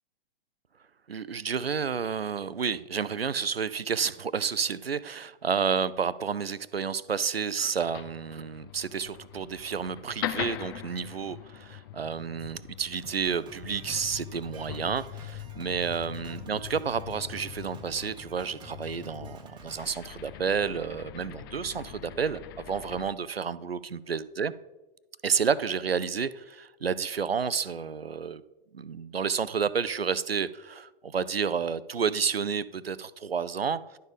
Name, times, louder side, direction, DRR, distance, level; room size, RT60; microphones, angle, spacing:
voice 1, 1.1-22.4 22.6-24.5 25.2-28.4 28.7-34.0, right 6 dB, 90° right, 17 dB, 0.5 m, -30 dB
sound 1, 7.8-23.1, left 12 dB, 25° left, 0.3 m, -42 dB
Drum kit, 13.0-20.8, right 2 dB, 15° right, 1.2 m, -50 dB
11.5 x 4.4 x 5.2 m, 1.1 s
figure-of-eight pair, 110°, 29 cm